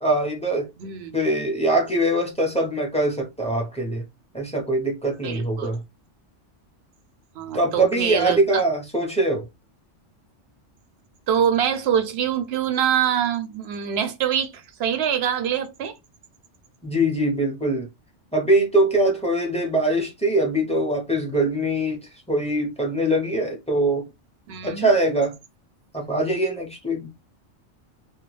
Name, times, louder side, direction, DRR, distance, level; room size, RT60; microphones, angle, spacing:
voice 1, 0.0-0.7 1.1-4.0 4.3-5.8 7.5-9.4 16.8-17.9 18.3-22.0 22.3-24.1 24.6-25.3 25.9-27.1, right 1 dB, 5° left, 0.6 m, -22 dB
voice 2, 0.8-1.3 5.2-5.7 7.4-8.6 11.3-15.9 24.5-24.9, right 9 dB, 65° right, 0.8 m, -24 dB
2.3 x 2.3 x 3.1 m
omnidirectional pair, 1.3 m